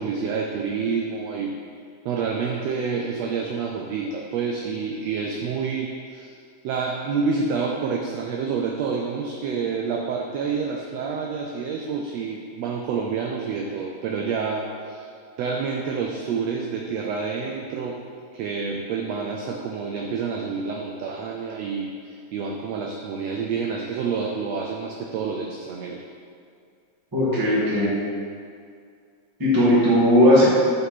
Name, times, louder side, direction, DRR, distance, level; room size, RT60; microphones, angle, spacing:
voice 1, 0.0-1.5 2.0-6.3 6.6-15.1 15.4-18.0 18.3-26.0, right 5 dB, 85° right, 0 dB, 1.5 m, -28 dB
voice 2, 27.1-27.9 29.4-30.4, equal, 10° right, -8 dB, 0.9 m, -17 dB
6.6 x 5.3 x 4.2 m, 2.2 s
omnidirectional pair, 3.5 m